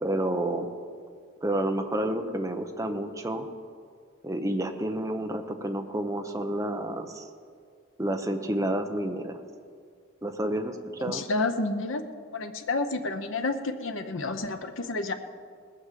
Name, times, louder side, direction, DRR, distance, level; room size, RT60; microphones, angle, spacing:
voice 1, 0.0-0.7 1.4-3.5 4.2-7.3 8.0-9.4 10.2-11.2, right 1 dB, 15° right, 5 dB, 0.8 m, -30 dB
voice 2, 11.0-12.0 12.3-15.1, left 3 dB, 70° left, 7 dB, 0.8 m, -30 dB
19.5 x 6.6 x 7.5 m, 2.1 s
head